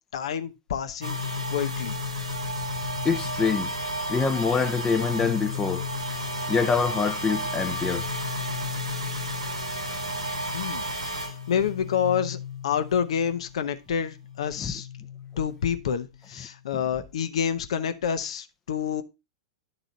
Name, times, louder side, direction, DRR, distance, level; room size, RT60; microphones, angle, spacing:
voice 1, 0.1-1.1 1.5-2.0 10.5-10.9 11.2-12.4 12.6-14.9 15.4-19.0, left 8 dB, 70° left, 0.8 m, -28 dB
sound 1, 1.0-13.7 14.0-16.5, left 1 dB, 90° right, 1.6 m, -32 dB
voice 2, 3.0-3.7 4.1-5.9 6.5-8.1 14.6-14.7, left 5 dB, 20° left, 0.7 m, -25 dB
10.5 x 4.0 x 3.8 m
hypercardioid pair, 100°, 3 cm